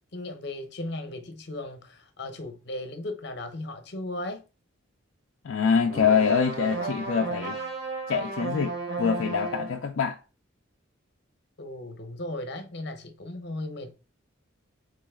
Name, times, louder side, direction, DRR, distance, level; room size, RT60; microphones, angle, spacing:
voice 1, 0.1-4.4 11.6-13.9, left 1 dB, 55° left, 0.7 m, -36 dB
voice 2, 5.4-7.6 8.1-10.2, left 6 dB, 70° left, 0.4 m, -25 dB
sound 1, 5.9-9.8, right 3 dB, 55° right, 1.0 m, -33 dB
3.8 x 3.1 x 3.5 m
head